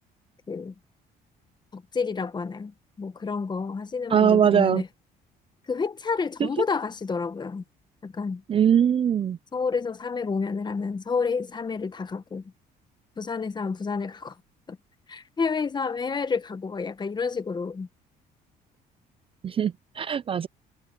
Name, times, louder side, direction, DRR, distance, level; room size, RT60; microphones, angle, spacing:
voice 1, 1.7-4.9 5.7-7.6 8.0-8.4 9.5-12.4 13.2-14.3 14.7-14.8 15.1-17.9, left 5 dB, 25° left, 1.4 m, -29 dB
voice 2, 4.1-4.8 6.4-6.5 8.5-9.4 19.4-20.5, right 8 dB, 35° right, 0.4 m, -21 dB
cardioid pair, 110°, 17 cm